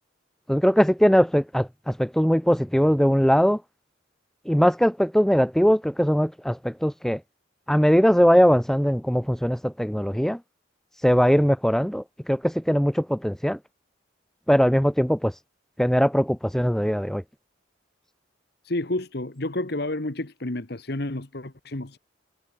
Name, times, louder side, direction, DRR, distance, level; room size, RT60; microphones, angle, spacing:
voice 1, 0.5-3.6 4.4-7.2 7.7-10.4 11.0-13.6 14.5-15.3 15.8-17.2, equal, ahead, 1.1 m, -20 dB
voice 2, 18.6-22.0, left 1 dB, 55° left, 1.5 m, -30 dB
head